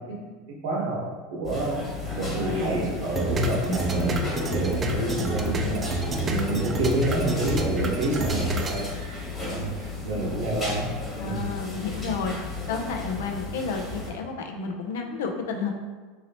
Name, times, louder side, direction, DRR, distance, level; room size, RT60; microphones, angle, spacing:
voice 1, 0.6-1.0 1.3-1.8 2.1-4.2 4.5-5.8 6.2-8.8 9.5-10.9 11.2-11.4, right 2 dB, 70° right, -3 dB, 1.0 m, -28 dB
sound 1, 1.4-14.1, left 3 dB, 25° left, 1.3 m, -33 dB
sound 2, 3.1-8.8, right 1 dB, 30° right, 0.4 m, -29 dB
voice 2, 11.2-12.3 12.7-15.7, left 5 dB, 80° left, 3 dB, 0.4 m, -31 dB
3.0 x 2.7 x 2.8 m, 1.4 s
hypercardioid pair, 100°, 0 cm